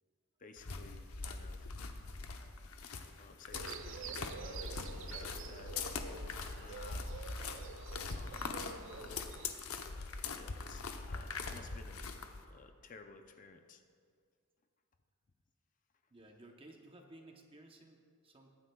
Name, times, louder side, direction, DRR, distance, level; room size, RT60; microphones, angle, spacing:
voice 1, 0.4-1.7 3.2-4.8 5.1-7.2 8.1-8.7 9.0-9.3 10.3-12.0 12.5-13.8, left 4 dB, 35° left, 6 dB, 0.5 m, -56 dB
sound 1, 0.6-12.4, left 4 dB, 75° left, 0.8 m, -42 dB
sound 2, 3.5-9.5, right 5 dB, 55° right, 0.5 m, -47 dB
voice 2, 16.1-18.5, right 1 dB, 25° right, 3 dB, 0.8 m, -57 dB
22.0 x 9.6 x 2.3 m, 2.2 s
head